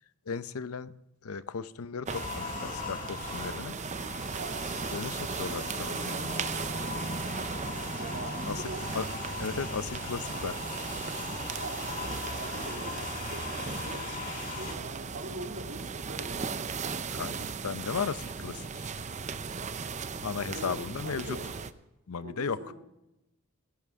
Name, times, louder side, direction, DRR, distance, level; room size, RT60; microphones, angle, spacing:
voice 1, 0.3-0.9 1.2-3.8 4.9-6.3 8.5-8.6 8.9-9.1 9.4-10.6 17.1-18.9 20.2-21.4 22.1-22.6, left 5 dB, 85° left, 15 dB, 0.6 m, -35 dB
sound 1, 2.1-14.7, left 5 dB, 40° left, 1.9 m, -40 dB
sound 2, 2.1-21.7, right 5 dB, 35° right, 0.6 m, -37 dB
voice 2, 4.3-4.7 8.0-8.8 11.6-14.1 14.5-16.5 20.4-21.4 22.2-22.7, right 2 dB, 65° right, 0 dB, 3.9 m, -43 dB
17.5 x 14.5 x 3.6 m, 0.93 s
head